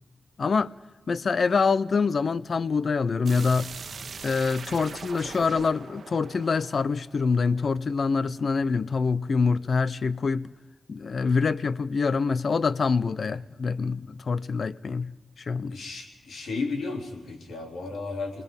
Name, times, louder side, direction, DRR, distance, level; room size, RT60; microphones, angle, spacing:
voice 1, 0.4-0.7 1.1-3.7 4.2-10.5 10.9-15.1 15.4-15.8, left 5 dB, 60° left, 0.6 m, -25 dB
sound 1, 3.2-8.0, right 5 dB, 75° right, 1.1 m, -41 dB
voice 2, 15.7-18.4, left 3 dB, 85° left, 3.5 m, -33 dB
29.0 x 20.0 x 5.3 m
wide cardioid pair, 85°, 0 cm